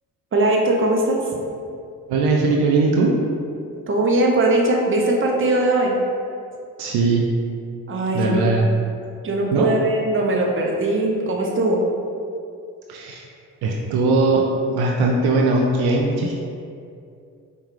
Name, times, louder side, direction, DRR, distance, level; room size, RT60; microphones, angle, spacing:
voice 1, 0.3-1.2 3.9-5.9 7.9-8.5 9.2-11.8, right 2 dB, 30° right, -1 dB, 0.8 m, -20 dB
voice 2, 2.1-3.2 6.8-7.2 8.1-8.7 9.5-9.7 12.9-13.2 13.6-16.3, right 3 dB, 65° right, -1 dB, 0.6 m, -19 dB
4.8 x 2.2 x 3.2 m, 2.4 s
hypercardioid pair, 45°, 41 cm